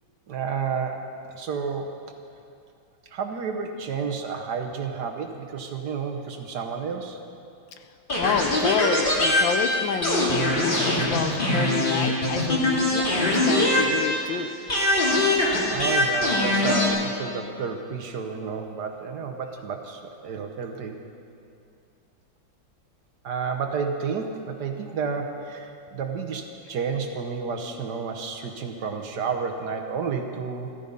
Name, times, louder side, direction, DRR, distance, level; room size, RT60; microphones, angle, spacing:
voice 1, 0.3-2.0 3.1-7.2 15.6-21.0 23.2-30.7, right 5 dB, 60° right, 5 dB, 1.4 m, -31 dB
sound 1, 8.1-14.4 14.7-16.9, left 1 dB, 25° left, 2.4 m, -22 dB
voice 2, 8.2-14.5, left 7 dB, 75° left, 8 dB, 1.4 m, -28 dB
14.0 x 13.5 x 5.4 m, 2.6 s
omnidirectional pair, 2.2 m